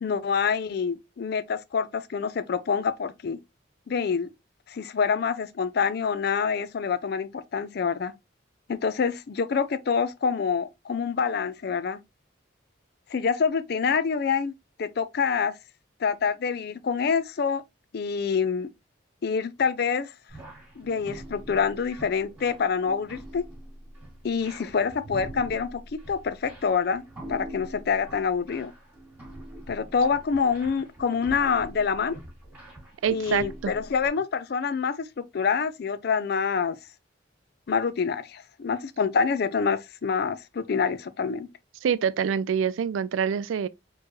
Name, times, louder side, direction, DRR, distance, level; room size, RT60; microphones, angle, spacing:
voice 1, 0.0-3.4 3.9-4.3 4.7-8.1 8.7-12.0 13.1-14.5 14.8-15.6 16.0-17.6 17.9-18.7 19.2-20.1 20.8-23.4 24.2-27.0 27.3-28.7 29.7-32.2 33.1-36.8 37.7-41.5, left 6 dB, 55° left, 0.4 m, -26 dB
sound 1, 20.3-34.1, right 1 dB, 10° right, 2.0 m, -44 dB
voice 2, 33.0-33.7 41.8-43.7, right 7 dB, 90° right, 0.3 m, -26 dB
4.4 x 3.1 x 2.9 m
head